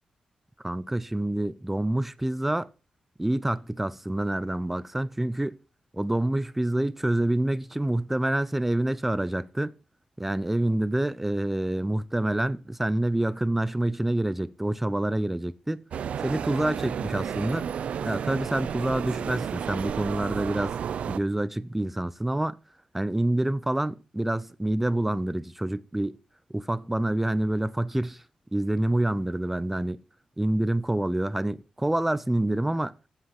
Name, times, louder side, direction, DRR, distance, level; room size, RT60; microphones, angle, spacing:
voice 1, 0.6-2.7 3.2-5.6 5.9-9.7 10.2-15.8 16.2-17.7 18.0-20.8 21.1-22.6 22.9-26.2 26.5-28.2 28.5-30.0 30.4-32.9, right 1 dB, 10° right, 0.6 m, -27 dB
sound 1, 15.9-21.2, right 8 dB, 65° right, 0.5 m, -32 dB
16.0 x 8.2 x 5.2 m
wide cardioid pair, 165°, 2 cm